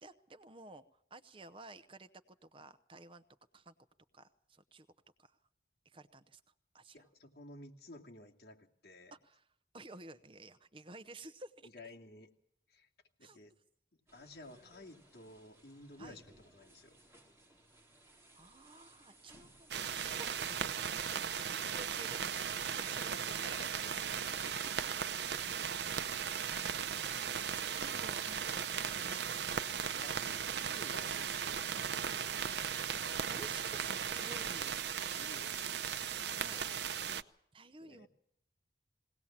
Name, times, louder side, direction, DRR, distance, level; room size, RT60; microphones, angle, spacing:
voice 1, 0.0-3.2 3.5-3.7 4.1-4.9 5.2-5.4 5.8-6.4 6.7-7.1 9.1-9.5 9.7-11.7 13.2-13.4 16.0-16.2 18.3-23.6 23.9-24.0 24.3-24.4 27.3-29.6 33.3-34.8 36.3-36.6 37.5-38.1, right 2 dB, 30° right, 12 dB, 0.8 m, -53 dB
voice 2, 6.9-9.1 11.6-12.3 12.7-12.9 13.2-13.5 13.9-17.0 21.6-22.1 22.7-23.9 24.6-24.7 30.0-30.2 30.7-32.5 35.0-36.0 37.8-38.1, left 2 dB, 65° left, 1 dB, 2.5 m, -54 dB
sound 1, 14.1-19.7, right 1 dB, 15° right, 3.6 m, -62 dB
sound 2, 19.7-37.2, right 7 dB, 75° right, 0.7 m, -37 dB
sound 3, 25.9-33.5, right 10 dB, 50° right, 1.0 m, -58 dB
20.5 x 18.0 x 7.3 m, 0.73 s
head